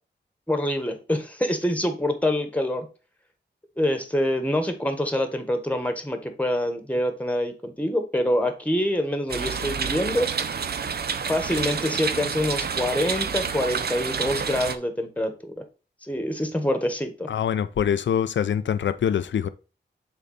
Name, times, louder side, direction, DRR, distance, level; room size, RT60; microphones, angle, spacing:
voice 1, 0.5-2.9 3.8-10.3 11.3-15.6 16.1-17.3, left 1 dB, 5° left, 1.4 m, -26 dB
sound 1, 9.3-14.8, right 6 dB, 55° right, 0.6 m, -29 dB
voice 2, 17.3-19.5, left 8 dB, 80° left, 0.5 m, -24 dB
6.8 x 4.1 x 4.0 m
wide cardioid pair, 90°, 19 cm